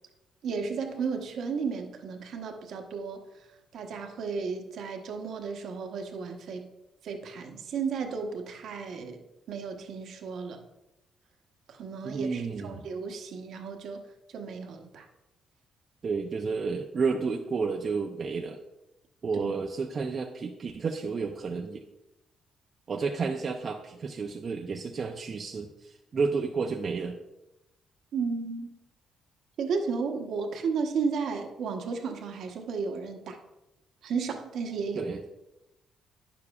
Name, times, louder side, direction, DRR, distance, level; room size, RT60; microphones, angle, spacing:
voice 1, 0.4-3.2 3.7-6.7 7.0-10.6 11.7-14.0 14.3-15.1 19.3-19.6 28.1-28.7 29.6-33.4 34.0-35.1, right 5 dB, 70° right, 4 dB, 1.0 m, -33 dB
voice 2, 12.0-12.8 16.0-18.6 19.2-21.8 22.9-27.2 35.0-35.2, right 4 dB, 45° right, 2 dB, 0.5 m, -31 dB
9.3 x 7.0 x 2.4 m, 0.92 s
cardioid pair, 90°, 0 cm